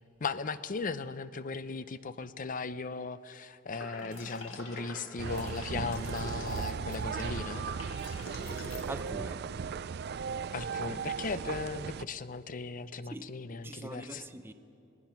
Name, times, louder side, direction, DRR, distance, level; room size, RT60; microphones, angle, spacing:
voice 1, 0.2-7.6 10.5-14.3, left 4 dB, 45° left, 0.6 m, -37 dB
sound 1, 3.7-8.8, left 2 dB, 80° left, 2.1 m, -45 dB
sound 2, 5.2-12.1, right 6 dB, 55° right, 0.4 m, -37 dB
voice 2, 8.9-9.5 13.1-14.5, right 1 dB, 10° right, 0.7 m, -43 dB
26.0 x 19.0 x 5.8 m
head